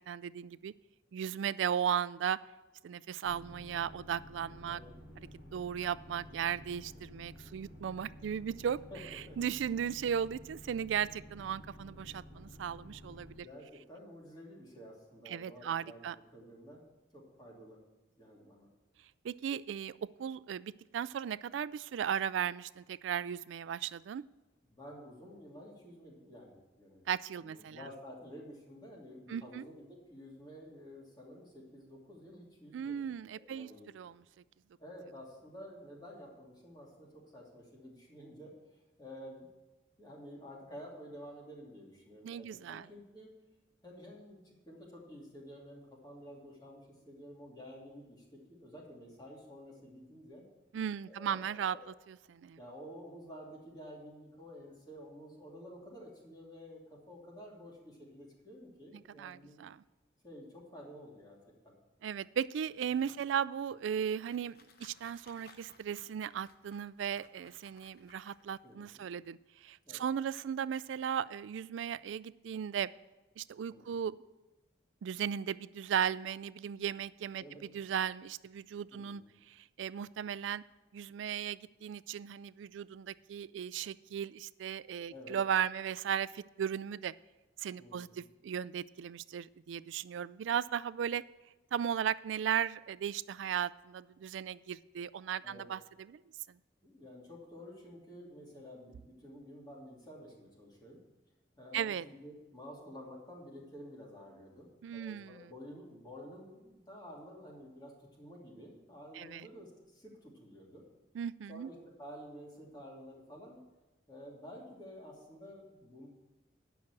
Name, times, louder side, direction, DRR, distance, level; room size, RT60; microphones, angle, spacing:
voice 1, 0.1-0.7 1.1-2.4 2.8-4.8 5.5-8.8 9.4-13.5 15.3-16.2 19.2-24.2 27.1-27.8 29.3-29.6 32.7-33.7 33.9-34.2 42.2-42.9 50.7-51.8 52.3-52.6 59.2-59.8 62.0-72.9 73.4-74.2 75.0-80.6 80.9-87.1 87.6-91.2 91.7-96.2 101.7-102.0 104.8-105.5 109.1-109.5 111.1-111.7, right 8 dB, 80° right, 18 dB, 0.3 m, -36 dB
sound 1, 3.2-13.4, equal, 85° left, 3.2 m, -52 dB
voice 2, 4.6-4.9 7.0-7.3 8.9-9.4 13.3-16.8 17.1-17.8 18.2-18.7 24.7-27.1 27.4-34.0 34.8-39.5 40.0-43.3 43.8-50.4 51.1-51.8 52.6-59.7 60.2-61.4 61.6-61.8 62.9-63.2 68.6-69.0 69.8-70.0 73.7-73.9 77.4-77.6 78.9-79.3 85.1-85.3 87.8-88.2 95.4-95.6 96.8-101.0 101.6-110.8 111.5-113.6 114.1-116.1, equal, 20° left, -3 dB, 2.6 m, -51 dB
sound 2, 63.8-68.7, left 4 dB, 55° left, 0.8 m, -62 dB
10.0 x 6.0 x 7.4 m, 1.1 s
head